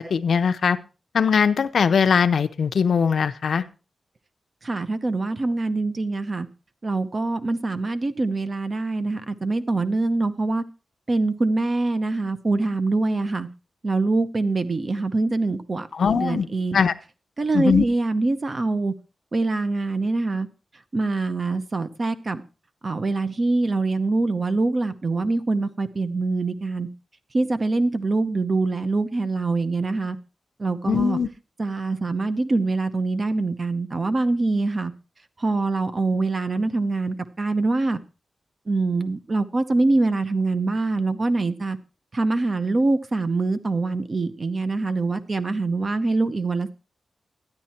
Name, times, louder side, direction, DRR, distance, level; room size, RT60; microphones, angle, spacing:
voice 1, 0.1-0.8 1.1-3.6 16.0-16.5 16.7-16.9 17.5-17.8 30.9-31.3, left 6 dB, 70° left, 0.7 m, -20 dB
voice 2, 4.6-6.5 6.8-10.6 11.1-13.5 13.8-16.8 17.4-18.9 19.3-20.5 20.9-22.4 22.8-26.9 27.3-30.2 30.6-31.2 31.6-34.9 35.4-38.0 38.7-41.8 42.1-46.7, right 3 dB, 35° right, 0.8 m, -24 dB
12.5 x 10.5 x 4.3 m
wide cardioid pair, 180°, 0 cm